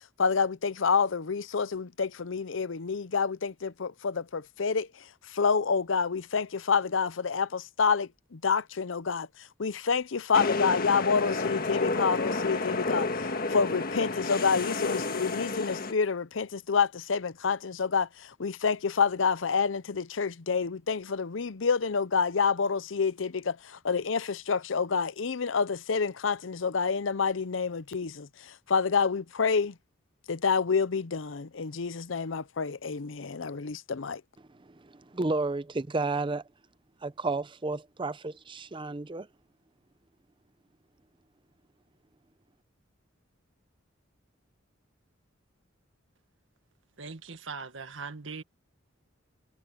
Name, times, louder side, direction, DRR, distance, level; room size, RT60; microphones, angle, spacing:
voice 1, 0.2-4.9 5.3-9.3 9.6-29.7 30.3-34.2, left 5 dB, 75° left, 0.7 m, -28 dB
sound 1, 10.3-15.9, left 3 dB, 50° left, 1.6 m, -30 dB
voice 2, 34.5-36.4 37.0-39.3, right 3 dB, 25° right, 0.6 m, -32 dB
voice 3, 47.0-48.4, right 4 dB, 75° right, 1.8 m, -40 dB
head